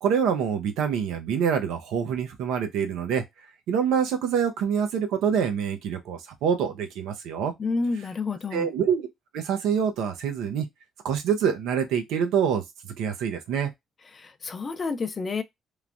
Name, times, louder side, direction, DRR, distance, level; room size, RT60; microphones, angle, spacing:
voice 1, 0.0-3.2 3.7-7.5 8.5-9.1 9.3-10.7 11.0-12.6 13.0-13.7, right 7 dB, 75° right, 0.6 m, -26 dB
voice 2, 7.6-8.7 14.1-15.4, left 4 dB, 45° left, 0.5 m, -29 dB
3.1 x 2.1 x 2.5 m
hypercardioid pair, 55°, 0 cm